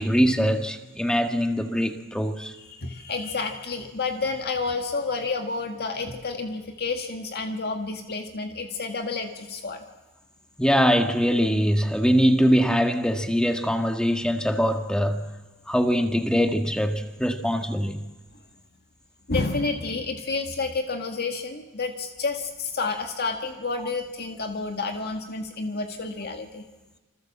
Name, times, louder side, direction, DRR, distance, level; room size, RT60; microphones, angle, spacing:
voice 1, 0.0-2.5 10.6-15.2 15.7-18.1, equal, 5° left, 1.8 m, -22 dB
voice 2, 2.7-9.8 19.3-26.7, left 3 dB, 45° left, 2.0 m, -30 dB
28.0 x 26.5 x 7.4 m
head